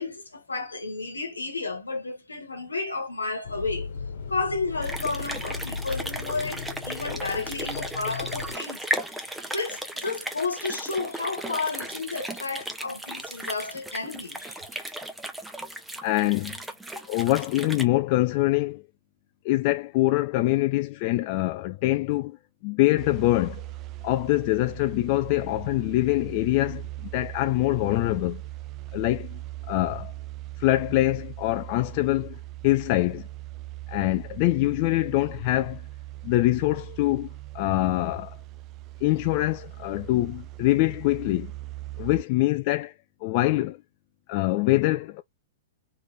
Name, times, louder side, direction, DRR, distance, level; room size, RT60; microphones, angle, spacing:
voice 1, 0.0-3.9 4.3-14.6, left 3 dB, 85° left, 1.2 m, -32 dB
sound 1, 3.4-8.6, left 5 dB, 65° left, 1.2 m, -36 dB
sound 2, 4.8-17.8, right 1 dB, 5° right, 0.8 m, -36 dB
voice 2, 16.0-16.6 17.1-18.8 19.4-22.4 22.6-23.7 24.0-28.4 28.9-29.4 29.7-30.1 30.6-32.4 32.6-33.3 33.9-35.8 36.2-37.3 37.5-38.4 39.0-41.5 42.0-42.9 43.2-43.8 44.3-45.2, left 18 dB, 45° left, 0.3 m, -24 dB
sound 3, 23.0-42.2, right 17 dB, 35° right, 0.4 m, -40 dB
3.4 x 3.3 x 2.6 m
figure-of-eight pair, 110°, 0 cm